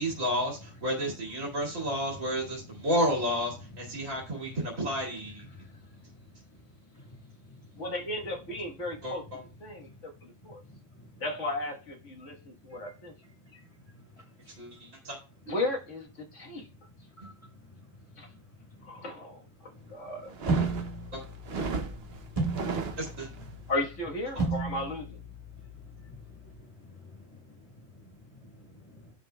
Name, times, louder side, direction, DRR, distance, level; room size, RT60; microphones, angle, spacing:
voice 1, 0.0-5.4 9.0-9.1 14.6-15.2 21.1-21.2 23.0-23.3, equal, 85° right, 2.7 m, -31 dB
voice 2, 7.8-10.6 11.2-13.1 15.5-16.7 18.2-18.3 18.8-20.8 23.7-25.2, left 2 dB, 70° left, 1.8 m, -35 dB
voice 3, 10.6-11.2 12.7-12.8 14.1-14.5 17.2-17.3 18.7-18.9 19.7-19.9 22.2-22.4 22.8-23.0 23.5-23.7 26.0-29.1, left 2 dB, 30° left, 2.8 m, -52 dB
sound 1, 20.2-23.5, right 4 dB, 55° right, 1.0 m, -35 dB
sound 2, 20.5-26.5, right 3 dB, 30° right, 1.7 m, -35 dB
16.0 x 5.3 x 2.2 m
omnidirectional pair, 1.3 m